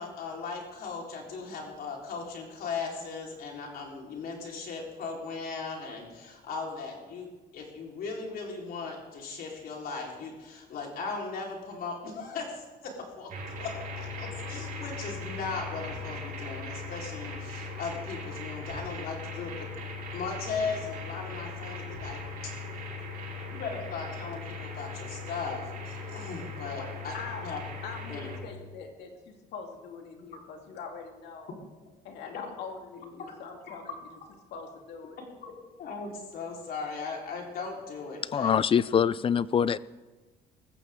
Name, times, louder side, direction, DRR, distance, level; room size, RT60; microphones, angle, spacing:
voice 1, 0.0-7.3 7.5-19.7 20.1-22.2 23.5-27.1 27.4-27.6 28.1-28.3 33.6-33.9 35.4-35.5 35.8-38.5, left 4 dB, 65° left, -1 dB, 4.2 m, -38 dB
sound 1, 13.3-28.4, left 3 dB, 55° right, 4.7 m, -39 dB
voice 2, 26.8-31.5 32.0-33.9 34.5-35.2, left 5 dB, 80° left, 3 dB, 2.5 m, -43 dB
voice 3, 38.3-39.8, left 7 dB, 35° left, 20 dB, 0.4 m, -24 dB
20.0 x 15.0 x 3.8 m, 1.3 s
cardioid pair, 110°, 17 cm